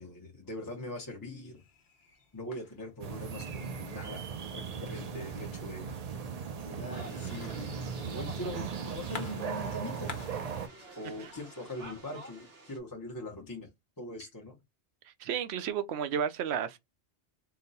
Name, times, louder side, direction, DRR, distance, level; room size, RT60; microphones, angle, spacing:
voice 1, 0.0-1.6 2.3-4.3 4.5-5.9 6.6-10.1 11.0-13.7 14.0-14.6, left 1 dB, 20° left, 0.7 m, -42 dB
sound 1, 1.5-11.8, left 4 dB, 50° left, 0.9 m, -52 dB
sound 2, 3.0-10.7, right 6 dB, 55° right, 0.4 m, -38 dB
sound 3, 6.9-12.8, right 2 dB, 85° right, 1.2 m, -50 dB
voice 2, 15.2-16.8, right 8 dB, 70° right, 0.8 m, -32 dB
3.9 x 2.1 x 3.9 m
omnidirectional pair, 1.2 m